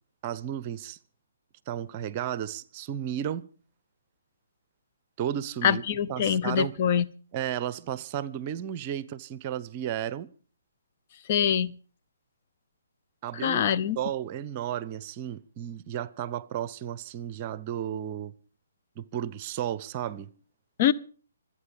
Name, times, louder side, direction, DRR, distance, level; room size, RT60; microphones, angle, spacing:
voice 1, 0.2-1.0 1.7-3.5 5.2-5.8 6.1-6.8 7.3-10.3 13.2-13.7 14.0-18.3 19.0-20.3, right 10 dB, 35° right, 0.8 m, -33 dB
voice 2, 5.6-7.1 11.3-11.8 13.4-14.0 20.8-20.9, left 9 dB, 40° left, 0.8 m, -24 dB
26.0 x 9.0 x 5.2 m
figure-of-eight pair, 140°, 0 cm